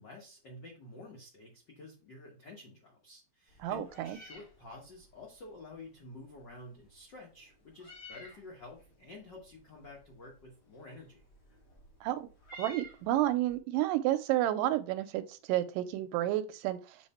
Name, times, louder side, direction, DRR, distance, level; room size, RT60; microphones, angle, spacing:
voice 1, 0.0-11.2, left 2 dB, 90° left, -1 dB, 0.9 m, -50 dB
Meow, 3.5-13.6, equal, 40° left, 1.8 m, -55 dB
voice 2, 3.6-4.2 12.0-12.3 12.6-17.0, right 14 dB, 80° right, 11 dB, 2.0 m, -31 dB
7.2 x 3.4 x 4.1 m, 0.34 s
omnidirectional pair, 4.1 m